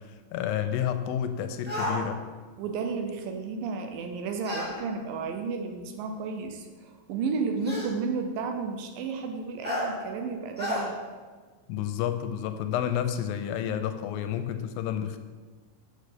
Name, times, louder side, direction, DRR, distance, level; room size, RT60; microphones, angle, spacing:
voice 1, 0.0-2.2 11.7-15.2, left 9 dB, 80° left, 9 dB, 2.3 m, -30 dB
sound 1, 1.6-2.0 4.4-4.7 6.0-6.1 7.6-7.9 9.6-9.9 10.6-10.8, left 1 dB, 5° right, 1.4 m, -31 dB
voice 2, 2.6-11.0, right 4 dB, 75° right, 5 dB, 2.4 m, -32 dB
6.7 x 6.5 x 6.6 m, 1.4 s
omnidirectional pair, 4.2 m